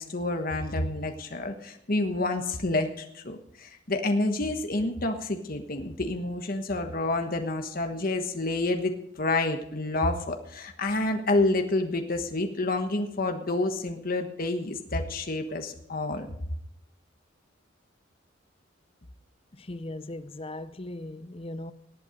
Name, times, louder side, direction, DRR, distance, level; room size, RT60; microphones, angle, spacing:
voice 1, 0.0-16.3, left 2 dB, 45° left, 1.3 m, -29 dB
voice 2, 19.6-21.7, left 1 dB, 30° left, 0.6 m, -38 dB
19.0 x 8.5 x 5.3 m
head